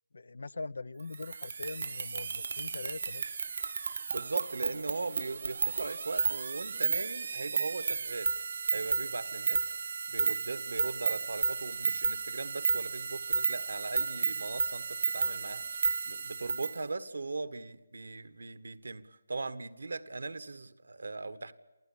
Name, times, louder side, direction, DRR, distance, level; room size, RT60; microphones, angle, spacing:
voice 1, 0.1-3.3, left 3 dB, 75° left, 19 dB, 0.8 m, -42 dB
sound 1, 1.1-16.8, right 4 dB, 60° right, 1.1 m, -33 dB
voice 2, 4.1-8.3 8.7-9.7 10.1-15.6 16.0-21.5, right 3 dB, 75° right, 12 dB, 1.7 m, -39 dB
28.0 x 16.5 x 8.7 m, 1.1 s
figure-of-eight pair, 155°, 0 cm